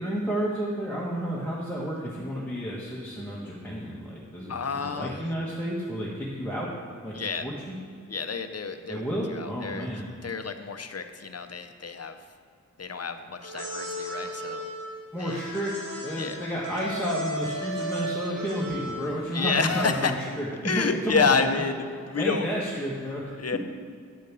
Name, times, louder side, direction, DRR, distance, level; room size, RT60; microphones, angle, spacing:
voice 1, 0.0-6.7 7.0-7.1 7.4-7.7 8.9-10.0 15.1-15.7 16.0-21.6 22.2-23.6, equal, 5° left, -7 dB, 1.3 m, -31 dB
voice 2, 4.5-5.3 7.1-7.4 8.1-9.0 9.3-9.9 10.2-12.2 12.8-14.7 15.2-15.4 16.2-16.4 19.3-20.1 20.6-22.5 23.4-23.6, left 5 dB, 50° left, 8 dB, 0.7 m, -29 dB
sound 1, 13.4-19.3, equal, 75° right, 1.9 m, -35 dB
9.4 x 5.3 x 6.8 m, 2.2 s
wide cardioid pair, 85°, 31 cm